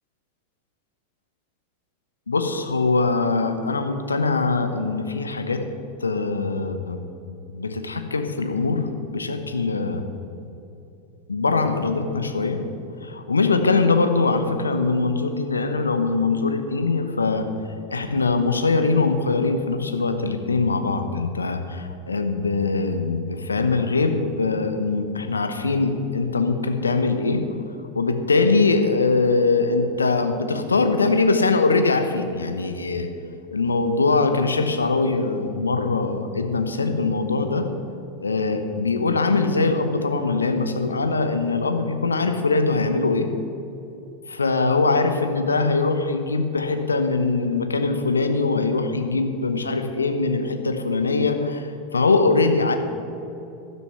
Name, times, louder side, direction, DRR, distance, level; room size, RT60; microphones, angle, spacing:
voice 1, 2.3-5.6 6.0-7.0 7.5-10.0 11.3-12.7 13.0-17.5 17.9-27.4 27.9-33.1 33.5-37.7 38.2-43.3 44.3-52.7, left 3 dB, 85° left, 7 dB, 1.0 m, -22 dB
12.0 x 6.6 x 9.4 m, 2.7 s
figure-of-eight pair, 85°, 0 cm